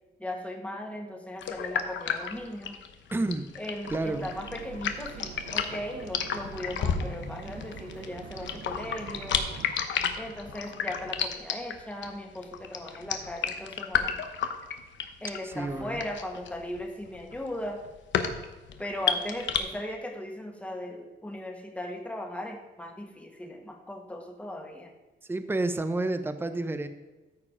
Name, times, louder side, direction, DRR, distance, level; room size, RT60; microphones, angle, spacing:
voice 1, 0.2-2.8 3.6-9.5 10.2-14.2 15.2-17.8 18.8-24.9, left 1 dB, 5° left, 2 dB, 1.8 m, -38 dB
sound 1, 1.4-19.6, left 8 dB, 70° left, 1.0 m, -32 dB
voice 2, 3.1-3.5 3.9-4.3 15.4-16.0 25.3-26.9, right 2 dB, 10° right, 10 dB, 0.7 m, -30 dB
sound 2, 3.9-9.7, right 9 dB, 70° right, 0.6 m, -45 dB
13.5 x 4.9 x 4.9 m, 1.2 s
cardioid pair, 90°, 20 cm